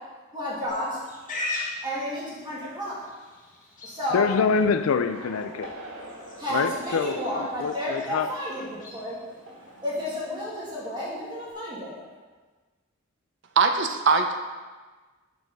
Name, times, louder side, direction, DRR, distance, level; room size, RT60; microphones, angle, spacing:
voice 1, 0.3-1.0 1.8-2.9 3.8-4.3 6.4-9.2 9.8-11.9, equal, 20° right, -7 dB, 2.2 m, -31 dB
Livestock farm animals working animals, 0.7-11.5, left 2 dB, 40° left, 1.3 m, -41 dB
voice 2, 4.1-5.7 6.5-8.3, left 5 dB, 90° left, 11 dB, 0.4 m, -25 dB
sound 1, 5.1-11.6 11.8-12.2, right 1 dB, 80° right, 1.3 m, -45 dB
voice 3, 13.6-14.4, right 5 dB, 60° right, 6 dB, 0.6 m, -21 dB
6.1 x 4.7 x 5.3 m, 1.3 s
head